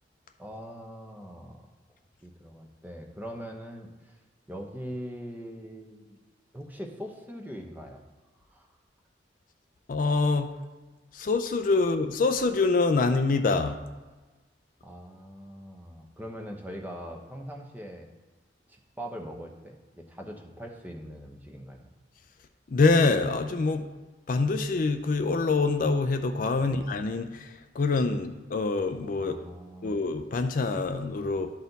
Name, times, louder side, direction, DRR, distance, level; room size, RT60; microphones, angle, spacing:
voice 1, 0.4-1.7 2.2-3.9 4.5-6.2 6.5-8.0 8.5-8.7 14.8-18.1 18.7-21.9 26.5-26.7 29.2-30.0, equal, 10° right, 2 dB, 0.8 m, -41 dB
voice 2, 9.9-10.5 11.1-13.8 22.7-23.9 24.3-27.5 27.8-29.4 29.8-31.5, left 3 dB, 50° left, 8 dB, 0.4 m, -25 dB
12.0 x 4.2 x 4.0 m, 1.2 s
head